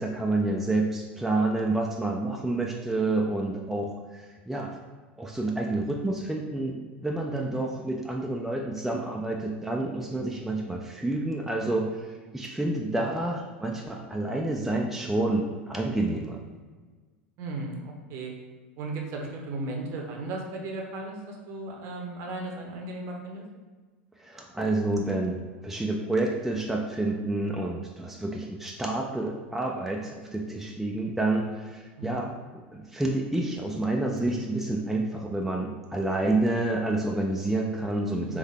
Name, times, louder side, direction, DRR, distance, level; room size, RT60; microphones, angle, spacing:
voice 1, 0.0-4.8 5.2-16.4 24.2-32.4 32.7-38.4, right 2 dB, 5° right, 0 dB, 0.4 m, -29 dB
voice 2, 7.3-7.6 12.7-12.9 17.4-18.3 18.8-23.4 32.0-32.2 38.3-38.4, right 2 dB, 45° right, 1 dB, 0.9 m, -36 dB
3.7 x 3.5 x 3.4 m, 1.4 s
figure-of-eight pair, 80°, 6 cm